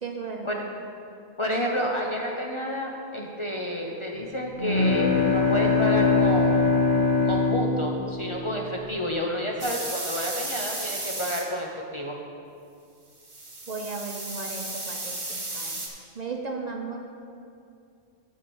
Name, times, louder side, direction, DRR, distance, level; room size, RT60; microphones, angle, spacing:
voice 1, 0.0-0.7 13.7-15.7 16.2-17.0, right 4 dB, 45° right, 2 dB, 0.7 m, -35 dB
voice 2, 1.4-6.7 7.2-12.2, equal, 35° left, 0 dB, 0.6 m, -30 dB
sound 1, 4.5-8.6, left 4 dB, 50° left, 1.9 m, -22 dB
sound 2, 9.6-11.4 13.2-15.9, right 2 dB, 30° right, 1.2 m, -34 dB
10.5 x 4.4 x 6.9 m, 2.5 s
omnidirectional pair, 1.1 m